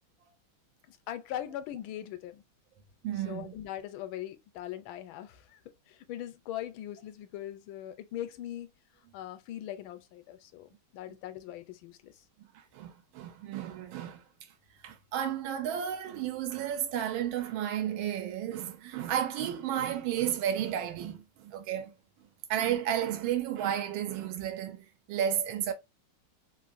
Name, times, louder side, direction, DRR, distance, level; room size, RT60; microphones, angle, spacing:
voice 1, 0.9-2.4 3.3-5.6 5.9-8.7 9.1-12.1, left 12 dB, 80° left, 1.4 m, -40 dB
voice 2, 3.0-3.6 12.5-14.2 14.8-21.9 22.5-25.7, right 10 dB, 85° right, 1.4 m, -32 dB
3.4 x 2.5 x 2.5 m
omnidirectional pair, 2.2 m